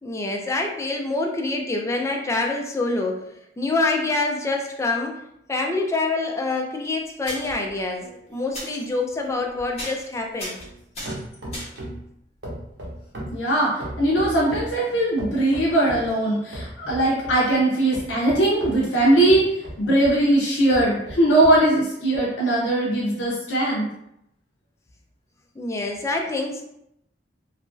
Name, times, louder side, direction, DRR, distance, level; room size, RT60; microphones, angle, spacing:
voice 1, 0.0-5.2 5.5-10.6 25.6-26.6, left 2 dB, 15° left, 1 dB, 0.3 m, -26 dB
sound 1, 6.8-6.9 7.2-7.6 8.5-8.8 9.3-9.5 9.8-10.1 10.4-11.9 14.2-14.3 14.5-14.6, left 1 dB, 35° left, 1.0 m, -35 dB
sound 2, 7.4-10.8 11.1-12.1 12.4-14.7 15.2-16.1 16.5-17.4 17.9-20.2 20.7-21.6 22.1-22.2, right 1 dB, 65° right, 0.8 m, -37 dB
voice 2, 13.3-19.5 19.8-23.9, right 1 dB, 80° left, -4 dB, 0.6 m, -20 dB
2.9 x 2.4 x 2.4 m, 0.78 s
head